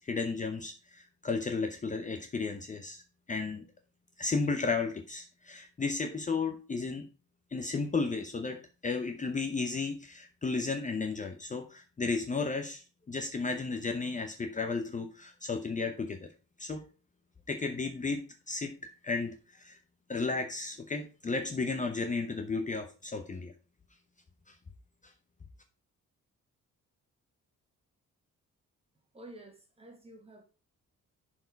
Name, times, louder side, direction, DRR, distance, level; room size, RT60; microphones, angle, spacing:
voice 1, 0.0-3.0 3.3-3.6 4.2-7.1 7.5-16.3 16.6-16.9 17.5-18.8 19.0-19.8 20.1-23.5 24.5-24.6, left 4 dB, 25° left, 0.8 m, -34 dB
voice 2, 29.1-30.4, right 1 dB, 20° right, 1.9 m, -50 dB
11.0 x 4.6 x 4.6 m
wide cardioid pair, 160°, 31 cm